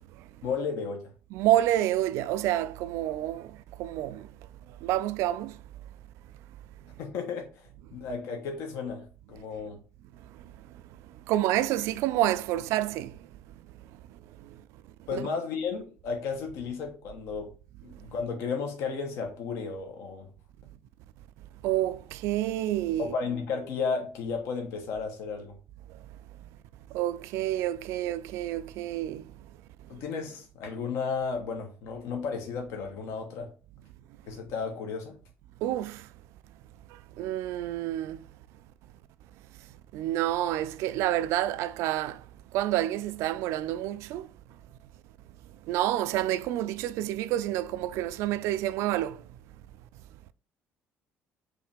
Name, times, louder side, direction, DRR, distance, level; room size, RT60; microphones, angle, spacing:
voice 1, 0.4-1.1 7.0-9.8 15.1-17.5 17.8-20.3 23.0-25.6 29.9-33.5 34.3-35.2, left 5 dB, 75° left, 1.1 m, -33 dB
voice 2, 1.3-3.5 3.8-4.3 4.8-5.5 11.3-13.1 15.1-15.2 21.6-23.1 26.9-29.2 35.6-36.0 37.2-38.2 39.9-42.2 42.5-44.3 45.7-49.2, right 13 dB, 80° right, 0.3 m, -28 dB
4.9 x 3.1 x 3.4 m
cardioid pair, 140°, 5 cm